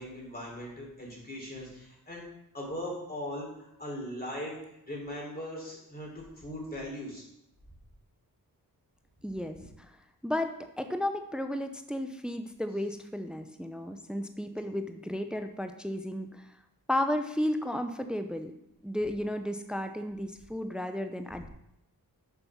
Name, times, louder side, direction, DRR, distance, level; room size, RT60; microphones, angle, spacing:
voice 1, 0.0-2.2 2.5-7.3 9.5-9.7, left 1 dB, 25° left, -2 dB, 3.7 m, -39 dB
voice 2, 9.2-9.6 10.2-10.5 10.8-16.4 16.9-18.5 18.8-21.5, left 1 dB, ahead, 7 dB, 0.7 m, -33 dB
7.1 x 5.2 x 6.0 m, 0.81 s
cardioid pair, 55°, 38 cm